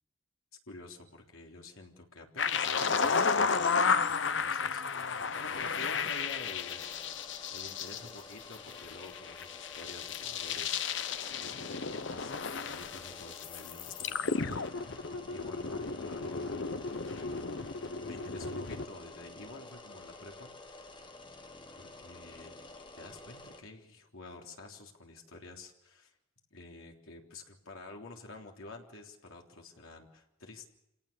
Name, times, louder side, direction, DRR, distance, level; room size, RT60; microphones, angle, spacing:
voice 1, 0.7-7.2 7.5-11.1 11.4-16.6 17.1-17.5 18.0-21.1 21.8-22.6 23.0-26.1 26.5-30.6, left 2 dB, 75° left, 1 dB, 3.5 m, -49 dB
sound 1, 2.4-18.8, left 5 dB, 60° left, 0.9 m, -33 dB
sound 2, 5.5-23.6, left 3 dB, 20° left, 1.5 m, -50 dB
28.0 x 18.0 x 6.9 m, 0.89 s
head